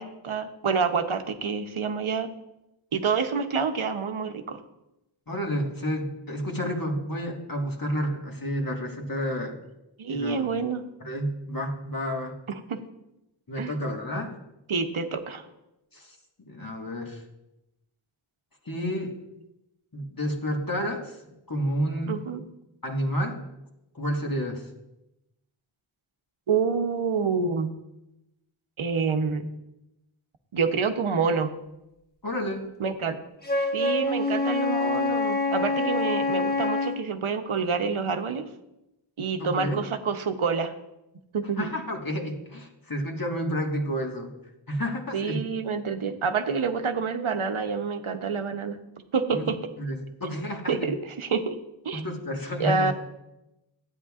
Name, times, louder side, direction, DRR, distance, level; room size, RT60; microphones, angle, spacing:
voice 1, 0.0-2.3 2.9-4.6 10.0-10.9 12.5-12.8 13.6-13.8 14.7-15.5 22.1-22.4 26.5-27.7 28.8-29.5 30.5-31.5 32.8-33.2 33.5-38.5 39.2-40.7 41.3-41.7 45.1-48.8 49.1-49.6 50.7-51.6 51.8-52.0 52.6-52.9, right 5 dB, 90° right, 7 dB, 0.8 m, -27 dB
voice 2, 5.3-9.5 10.1-10.4 11.0-12.3 13.5-14.4 15.9-16.2 16.5-17.2 18.6-19.1 19.9-21.2 21.5-22.2 22.8-23.4 23.9-24.7 32.2-32.7 39.4-39.8 41.6-44.3 44.7-45.4 49.3-49.4 49.8-50.9 51.9-52.9, equal, 45° left, 1 dB, 1.6 m, -30 dB
Wind instrument woodwind instrument, 33.4-37.0, left 3 dB, 20° left, 1.3 m, -26 dB
12.5 x 9.0 x 2.4 m, 0.92 s
wide cardioid pair, 50°, 48 cm